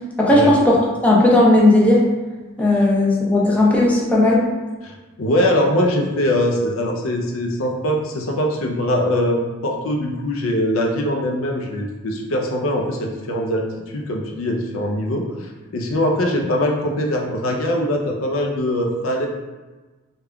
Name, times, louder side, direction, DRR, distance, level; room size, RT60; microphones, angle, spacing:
voice 1, 0.2-0.8 1.0-2.1 2.6-4.4, left 1 dB, 5° left, -5 dB, 0.6 m, -15 dB
voice 2, 4.8-19.3, left 1 dB, 90° left, 2 dB, 0.5 m, -22 dB
3.5 x 2.3 x 3.4 m, 1.2 s
head